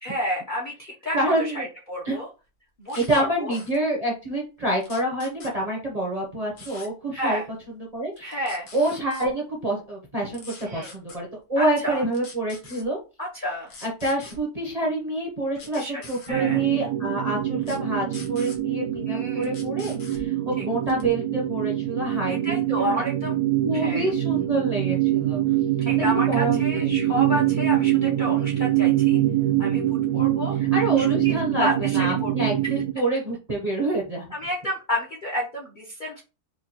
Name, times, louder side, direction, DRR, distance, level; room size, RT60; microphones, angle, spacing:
voice 1, 0.0-2.3 2.8-3.6 7.1-7.4 8.2-8.7 10.6-10.9 11.6-12.0 13.2-13.7 15.7-16.0 16.3-16.6 19.0-19.6 20.6-20.7 22.3-23.4 23.7-24.1 25.8-29.2 29.6-30.6 31.0-31.3 31.6-32.3 34.3-36.2, equal, 45° left, -3 dB, 0.7 m, -30 dB
voice 2, 1.1-1.7 2.0-2.2 2.9-7.4 7.9-8.4 8.7-13.0 13.8-22.9 23.6-25.4 26.0-26.9 30.6-31.7 31.9-34.3, right 1 dB, 35° right, -2 dB, 0.7 m, -27 dB
sound 1, 2.9-3.2 3.5-3.8 4.8-5.5 6.6-6.9 8.2-9.3 10.3-11.2 12.1-12.8 13.7-14.4 15.6-16.3 17.6-17.8 18.1-18.6 19.4-20.2 20.9-21.1, left 3 dB, 60° left, 1.4 m, -44 dB
sound 2, 16.3-32.9, right 13 dB, 75° right, 1.1 m, -24 dB
4.7 x 2.3 x 2.9 m, 0.31 s
omnidirectional pair, 1.7 m